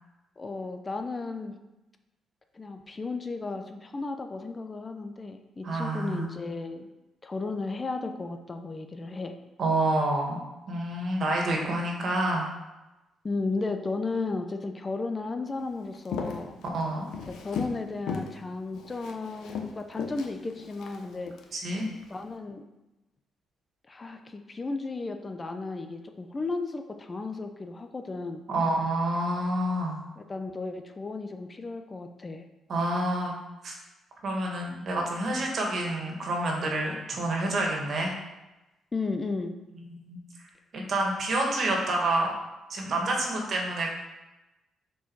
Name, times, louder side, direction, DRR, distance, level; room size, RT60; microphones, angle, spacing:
voice 1, 0.4-1.6 2.5-6.9 7.2-9.4 13.2-16.6 17.3-21.3 22.0-22.6 23.9-28.4 30.2-32.5 38.9-39.6, left 3 dB, 30° left, 6 dB, 0.6 m, -34 dB
voice 2, 5.6-6.3 9.6-10.4 10.7-12.5 16.7-17.0 21.5-21.9 28.5-30.0 32.7-33.3 33.6-33.7 34.2-38.1 39.9-40.2 40.7-42.3 42.7-43.9, right 2 dB, 55° right, 0 dB, 1.9 m, -28 dB
Walk footsteps, 15.9-17.8 18.1-18.4 18.7-21.4 22.0-22.2, left 5 dB, 80° left, 0.9 m, -36 dB
6.8 x 4.6 x 4.7 m, 1.0 s
cardioid pair, 90°, 0 cm